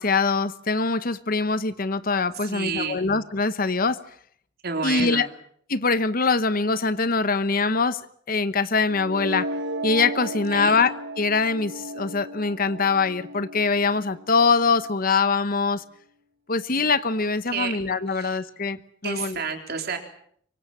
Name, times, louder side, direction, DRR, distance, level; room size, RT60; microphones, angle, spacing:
voice 1, 0.0-4.0 4.8-5.3 5.7-8.0 8.3-9.5 9.8-15.8 16.5-19.4, left 4 dB, 45° left, 1.0 m, -23 dB
voice 2, 2.4-3.1 4.6-5.3 10.5-10.8 17.5-17.7 18.1-18.4 19.0-20.0, right 5 dB, 55° right, 4.0 m, -30 dB
sound 1, 8.9-14.9, right 1 dB, 80° right, 1.8 m, -35 dB
24.5 x 24.0 x 7.3 m
head